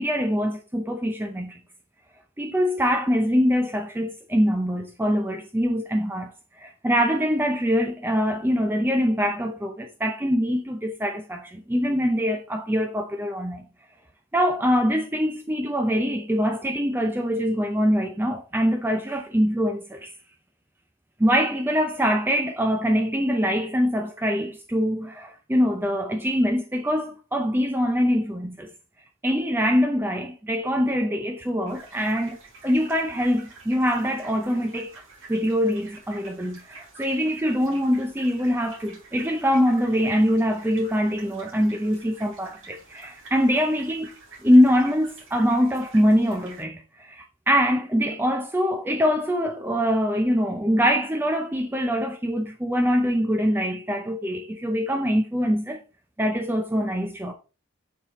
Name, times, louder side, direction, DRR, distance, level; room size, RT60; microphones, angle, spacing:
voice 1, 0.0-1.6 2.4-6.3 6.6-13.6 14.3-20.1 21.2-28.7 29.2-32.4 32.6-34.9 35.3-44.1 44.4-55.8 56.2-57.3, equal, 10° right, 0.4 m, -23 dB
sound 1, 31.7-46.6, right 3 dB, 75° right, 3.3 m, -48 dB
6.9 x 5.6 x 3.0 m
head